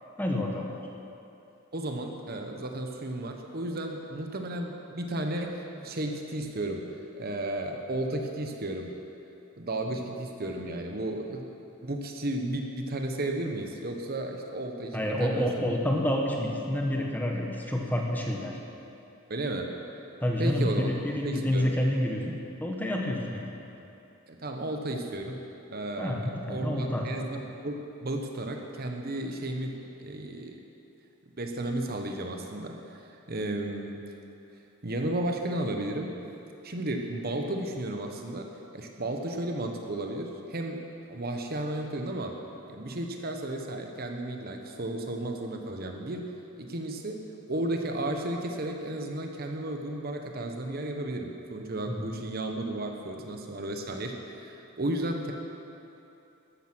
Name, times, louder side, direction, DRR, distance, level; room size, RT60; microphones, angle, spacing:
voice 1, 0.2-0.7 14.9-18.6 20.2-23.5 26.0-27.0 51.9-52.1, left 1 dB, 10° left, 0 dB, 1.4 m, -28 dB
voice 2, 1.7-6.9 7.2-8.9 9.6-11.5 11.8-15.5 19.3-19.8 20.4-20.9 21.2-21.7 24.3-25.4 25.7-30.6 31.4-34.1 34.8-36.1 36.6-42.4 42.7-46.3 46.6-47.2 47.5-55.3, right 1 dB, 45° right, 3 dB, 1.1 m, -33 dB
14.0 x 11.5 x 6.2 m, 2.9 s
head